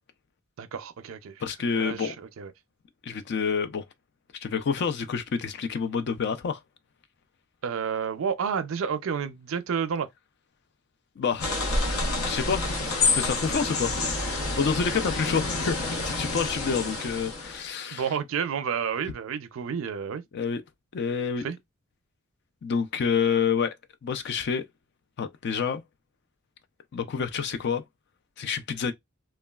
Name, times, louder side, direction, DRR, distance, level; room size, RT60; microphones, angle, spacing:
voice 1, 0.6-1.3 1.7-2.5 7.6-10.1 17.9-20.2 21.4-21.6, right 7 dB, 65° right, 0.4 m, -30 dB
voice 2, 1.4-2.1 3.0-3.8 4.4-6.6 11.2-11.5 12.3-12.7 13.0-18.2 20.3-20.6 20.9-21.5 22.6-23.8 24.0-24.6 25.2-25.8 26.9-27.8 28.4-28.9, left 6 dB, 50° left, 0.4 m, -28 dB
sound 1, 11.4-17.7, left 3 dB, 75° left, 0.7 m, -28 dB
3.0 x 2.2 x 2.3 m
head